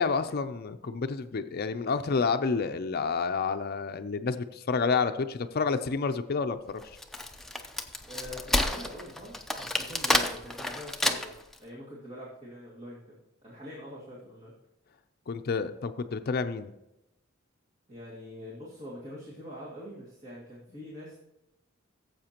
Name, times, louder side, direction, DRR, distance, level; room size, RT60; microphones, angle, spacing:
voice 1, 0.0-6.8 15.3-16.7, left 5 dB, 50° left, 9 dB, 0.5 m, -29 dB
Wood, 6.8-11.5, left 1 dB, ahead, 0.6 m, -29 dB
voice 2, 8.1-11.3 11.6-14.5 17.9-21.2, equal, 35° right, -6 dB, 2.2 m, -44 dB
17.0 x 7.8 x 2.9 m, 0.90 s
head